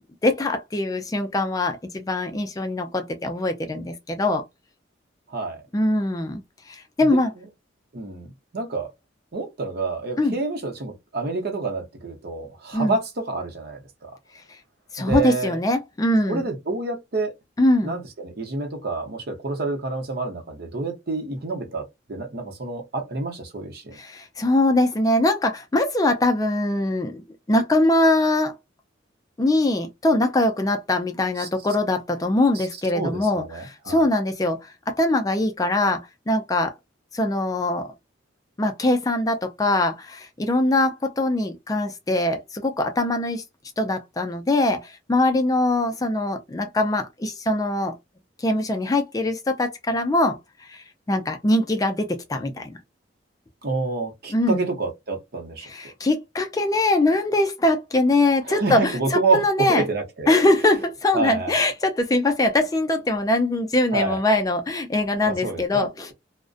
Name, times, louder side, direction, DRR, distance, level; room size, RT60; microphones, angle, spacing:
voice 1, 0.2-4.4 5.7-6.4 6.7-7.3 10.2-10.4 12.7-13.0 14.9-16.4 17.6-17.9 23.9-27.2 27.5-28.6 29.4-36.7 37.1-37.9 38.6-43.4 43.8-47.9 48.4-52.7 54.3-54.7 55.6-59.9 60.3-66.1, left 2 dB, 20° left, 0.3 m, -22 dB
voice 2, 5.3-5.6 7.1-7.2 7.9-8.9 9.3-14.1 15.0-15.6 16.3-17.3 17.8-24.0 31.4-31.5 32.5-32.7 32.9-34.0 53.6-55.7 58.5-60.3 61.1-61.6 63.9-64.2 65.2-66.1, right 3 dB, 55° right, 0.8 m, -28 dB
2.4 x 2.1 x 2.4 m
head